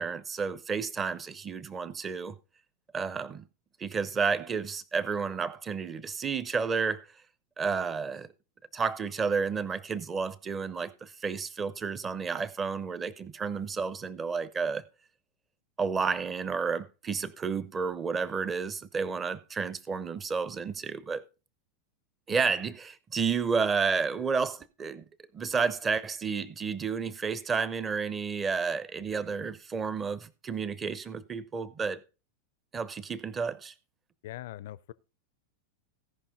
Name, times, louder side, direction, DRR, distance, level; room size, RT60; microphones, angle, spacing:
voice 1, 0.0-2.4 2.9-3.5 3.8-7.1 7.6-8.3 8.7-14.8 15.8-21.2 22.3-25.1 25.3-32.0 32.7-33.7, right 5 dB, 20° right, 0.8 m, -31 dB
voice 2, 34.2-34.9, left 14 dB, 55° left, 0.5 m, -41 dB
17.0 x 5.7 x 3.9 m
figure-of-eight pair, 90°, 0 cm